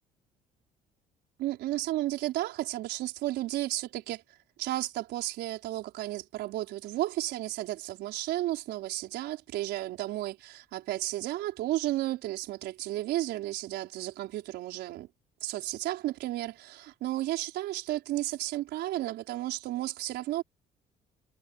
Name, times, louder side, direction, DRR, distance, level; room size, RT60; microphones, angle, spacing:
voice 1, 1.4-4.2 4.6-15.1 15.4-20.4, right 15 dB, 80° right, 4.9 m, -33 dB
cardioid pair, 110°, 17 cm